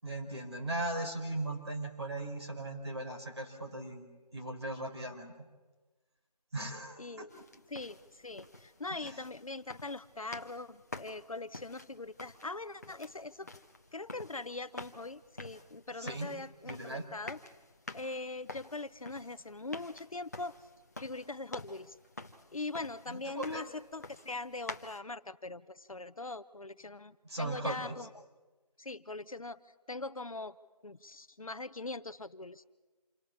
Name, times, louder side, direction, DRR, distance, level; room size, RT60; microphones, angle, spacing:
voice 1, 0.0-4.0 4.3-5.3 6.5-7.4 9.0-9.2 16.0-16.3 16.6-17.0 23.1-23.6 27.2-28.0, right 2 dB, 40° right, 2 dB, 5.1 m, -38 dB
voice 2, 7.0-7.3 7.7-13.5 13.9-17.4 17.9-20.5 21.0-21.9 22.5-28.1 28.8-29.6 29.9-30.5 30.8-32.6, left 3 dB, 60° left, 12 dB, 1.0 m, -42 dB
sound 1, 7.3-25.0, left 2 dB, 25° left, 1.1 m, -49 dB
28.0 x 23.0 x 7.3 m, 1.2 s
figure-of-eight pair, 180°, 20 cm